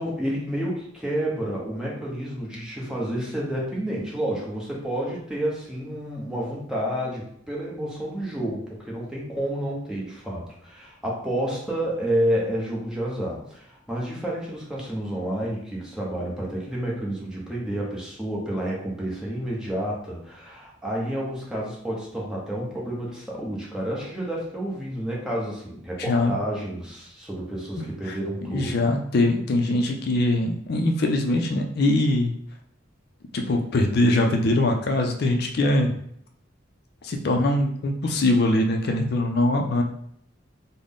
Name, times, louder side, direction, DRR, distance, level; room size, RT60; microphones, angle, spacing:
voice 1, 0.0-28.9, right 1 dB, 5° right, -4 dB, 0.8 m, -30 dB
voice 2, 26.0-26.3 28.0-28.2 28.5-32.3 33.3-36.0 37.0-39.8, left 2 dB, 55° left, 3 dB, 0.4 m, -22 dB
3.7 x 2.0 x 3.6 m, 0.68 s
head